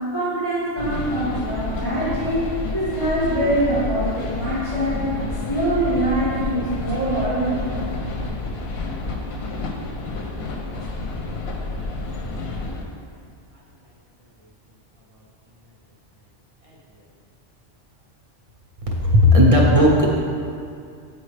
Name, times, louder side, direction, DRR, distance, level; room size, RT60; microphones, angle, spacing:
voice 1, 0.1-5.1 5.5-7.7, right 1 dB, 80° right, -11 dB, 1.8 m, -24 dB
sound 1, 0.8-12.8, left 2 dB, 65° left, 0.9 m, -29 dB
voice 2, 19.0-20.2, left 1 dB, 35° right, -3 dB, 0.7 m, -15 dB
8.4 x 4.2 x 3.2 m, 2.3 s
omnidirectional pair, 1.2 m